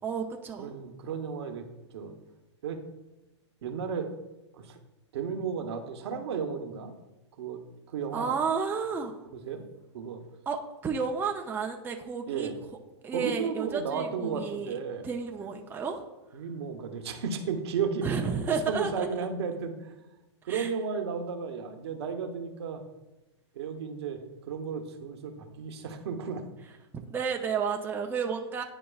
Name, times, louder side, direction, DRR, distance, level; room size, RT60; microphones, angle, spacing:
voice 1, 0.0-0.7 8.1-9.1 10.5-10.6 10.8-12.5 13.0-14.7 15.0-16.0 18.0-19.3 20.5-20.7 27.1-28.6, right 6 dB, 15° right, 2 dB, 0.5 m, -31 dB
voice 2, 0.6-1.6 1.9-2.2 2.6-2.8 3.6-4.1 4.5-4.8 5.1-6.9 7.4-7.6 7.9-8.3 9.2-9.6 9.9-10.2 12.3-12.5 13.1-15.1 16.3-18.1 18.5-20.0 20.4-22.8 23.5-26.5, right 6 dB, 65° right, 6 dB, 0.9 m, -34 dB
10.0 x 4.5 x 2.4 m, 1.0 s
hypercardioid pair, 115°, 15 cm